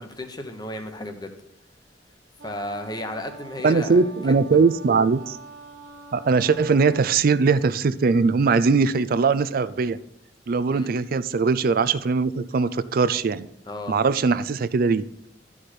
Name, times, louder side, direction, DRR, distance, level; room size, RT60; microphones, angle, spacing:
voice 1, 0.0-1.3 2.4-4.0 10.7-10.9 13.7-14.0, left 1 dB, 25° left, 1.0 m, -34 dB
Wind instrument woodwind instrument, 2.4-7.3, right 3 dB, 75° right, 1.2 m, -44 dB
voice 2, 3.6-5.4 6.1-10.0 10.5-13.5 13.9-15.0, right 4 dB, 55° right, 0.4 m, -21 dB
12.5 x 4.9 x 4.3 m
head